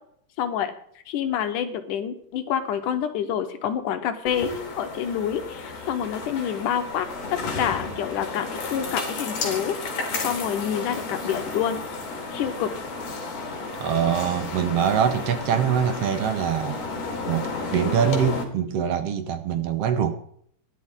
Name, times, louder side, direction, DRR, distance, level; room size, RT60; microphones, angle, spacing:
voice 1, 0.4-0.7 1.1-9.8 10.2-11.8 12.3-12.7, left 9 dB, 75° left, 8 dB, 2.4 m, -27 dB
sound 1, 4.3-18.4, left 3 dB, 55° left, 3.0 m, -32 dB
voice 2, 13.8-16.8 17.3-20.1, right 8 dB, 70° right, 9 dB, 1.5 m, -24 dB
16.5 x 11.0 x 3.7 m, 0.66 s
omnidirectional pair, 3.8 m